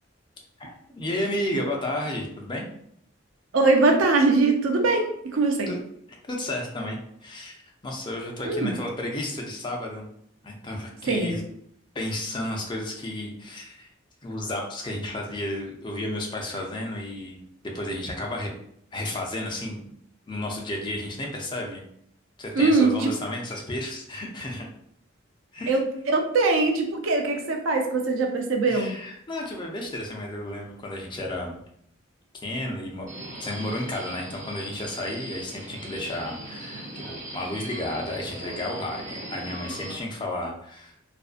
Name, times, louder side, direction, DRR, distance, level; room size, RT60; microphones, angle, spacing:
voice 1, 0.6-2.7 5.7-5.8 6.3-7.6 7.8-10.1 10.4-11.4 11.9-13.9 14.2-17.4 17.7-18.5 18.9-19.8 20.3-21.8 22.4-24.7 25.5-25.8 28.7-31.6 32.4-33.1 33.4-40.9, left 1 dB, 25° left, 0 dB, 0.4 m, -32 dB
voice 2, 3.5-5.7 8.5-8.7 11.0-11.4 22.5-23.1 25.7-28.9, right 3 dB, 90° right, 4 dB, 0.5 m, -22 dB
Subway metro underground, 33.1-39.9, right 1 dB, 40° right, 0.6 m, -39 dB
2.6 x 2.3 x 2.4 m, 0.69 s
head